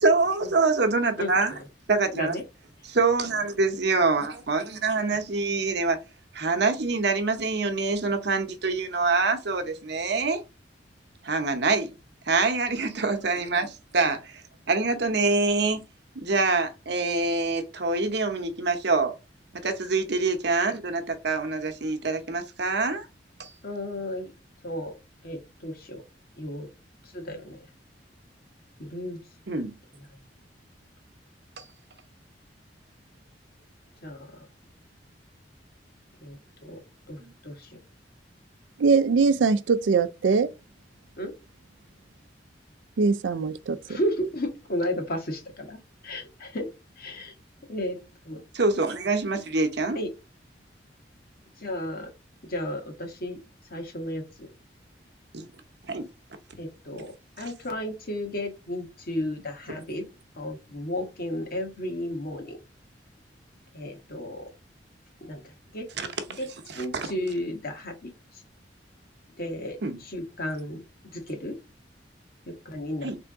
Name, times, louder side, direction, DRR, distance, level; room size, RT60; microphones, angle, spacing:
voice 1, 0.0-1.5 1.9-2.4 2.9-6.0 6.3-10.4 11.2-11.9 12.3-14.4 14.7-15.9 16.1-19.1 19.5-23.1 23.4-23.5 29.5-29.7 31.6-31.7 37.2-37.3 48.5-50.0 55.3-55.4 55.9-56.1 57.4-57.5 66.0-66.1 66.7-67.1 69.8-70.0 73.0-73.2, right 3 dB, 65° right, 0.8 m, -25 dB
voice 2, 1.2-1.6 2.1-2.4 23.6-24.3 24.6-24.9 25.2-26.0 26.4-26.7 27.0-27.7 28.8-29.2 29.9-30.0 34.0-34.4 36.2-36.4 36.6-36.8 37.1-37.8 41.2-41.3 43.9-46.7 47.0-47.3 47.7-48.0 48.2-48.4 49.9-50.1 51.6-52.1 52.5-53.4 53.7-54.5 56.6-60.1 60.3-62.6 63.7-64.4 65.2-65.9 66.4-66.5 66.7-68.4 69.4-70.8 71.1-71.5 72.5-73.1, left 1 dB, 55° left, 1.4 m, -33 dB
voice 3, 38.8-40.5 43.0-44.0, right 4 dB, 85° right, 0.4 m, -22 dB
3.8 x 3.4 x 3.5 m
head